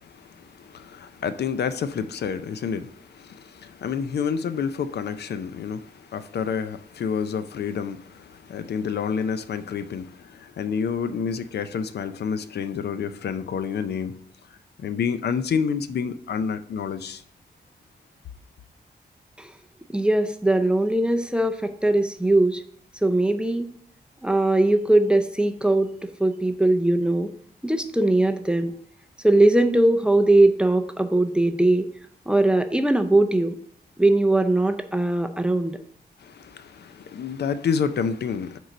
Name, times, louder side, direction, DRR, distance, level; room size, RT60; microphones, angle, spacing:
voice 1, 0.0-14.2 14.8-17.2 36.2-38.6, left 6 dB, 80° left, 0.5 m, -29 dB
voice 2, 19.9-22.6 23.0-23.7 24.2-27.3 27.6-28.7 29.2-31.9 32.3-33.6 34.0-35.8, right 2 dB, 5° right, 0.5 m, -20 dB
6.5 x 4.6 x 5.0 m
wide cardioid pair, 165°, 17 cm